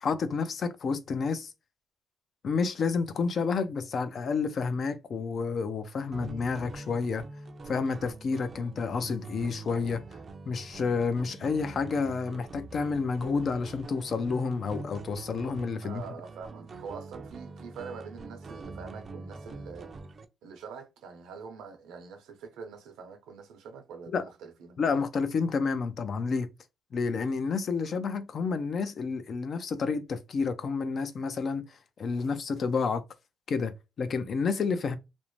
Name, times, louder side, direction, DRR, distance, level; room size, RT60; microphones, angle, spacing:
voice 1, 0.0-1.5 2.4-7.2 7.7-10.0 10.5-16.0 24.1-24.2 24.8-26.5 26.9-33.0 33.5-35.0, left 5 dB, 55° left, 0.4 m, -30 dB
sound 1, 6.1-20.2, right 3 dB, 45° right, 0.4 m, -44 dB
voice 2, 15.8-19.9 20.4-24.9, right 5 dB, 85° right, 0.7 m, -44 dB
2.6 x 2.1 x 3.0 m
cardioid pair, 90°, 0 cm